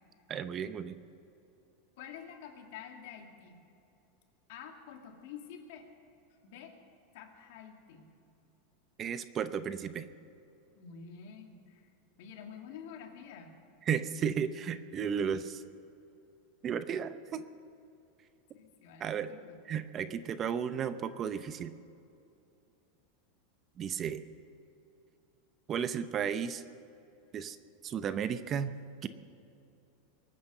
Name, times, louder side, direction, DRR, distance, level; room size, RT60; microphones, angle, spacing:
voice 1, 0.3-1.0 9.0-10.1 13.9-15.6 16.6-17.4 19.0-19.3 19.7-21.7 23.8-24.2 25.7-26.6 27.3-27.6 27.8-28.7 29.0-29.1, right 7 dB, 30° right, 12 dB, 0.7 m, -34 dB
voice 2, 2.0-3.7 4.5-5.9 6.4-6.7 7.1-8.2 10.7-11.9 12.2-13.6 18.5-19.6, left 7 dB, 70° left, 3 dB, 2.4 m, -48 dB
23.0 x 9.5 x 6.6 m, 2.7 s
supercardioid pair, 135°, 0 cm